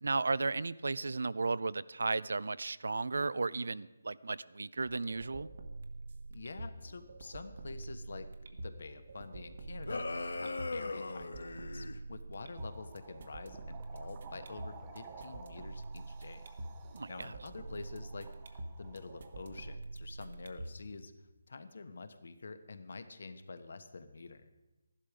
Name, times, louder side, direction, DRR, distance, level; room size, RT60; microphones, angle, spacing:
voice 1, 0.0-5.5 16.9-17.3, right 3 dB, 75° right, 19 dB, 0.4 m, -34 dB
sound 1, 4.8-20.8, right 2 dB, 50° right, 1.2 m, -46 dB
voice 2, 6.3-10.0 10.3-16.4 17.1-21.1 21.5-24.4, left 3 dB, 60° left, 10 dB, 1.2 m, -47 dB
sound 2, 9.8-12.0, left 3 dB, 80° left, 1.0 m, -39 dB
sound 3, 12.5-19.8, right 5 dB, 20° right, 0.7 m, -55 dB
12.5 x 11.5 x 5.0 m, 1.1 s
hypercardioid pair, 170°, 0 cm